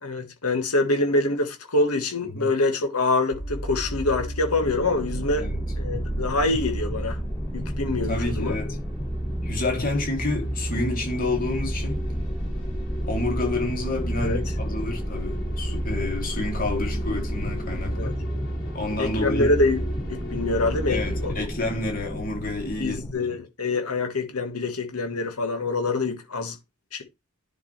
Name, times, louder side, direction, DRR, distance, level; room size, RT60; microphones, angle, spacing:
voice 1, 0.0-5.5 5.8-7.2 7.5-8.5 14.2-14.4 17.9-18.1 19.0-19.8 20.1-21.3 22.8-26.6 26.9-27.0, left 2 dB, 90° left, 1.8 m, -25 dB
sound 1, 3.3-21.4, right 1 dB, 60° left, 3.5 m, -32 dB
sound 2, 4.6-23.1, equal, ahead, 0.7 m, -33 dB
voice 2, 8.1-8.8 9.4-12.0 13.1-18.1 18.7-19.5 20.9-23.3, left 2 dB, 40° left, 3.1 m, -29 dB
10.5 x 5.1 x 3.4 m
head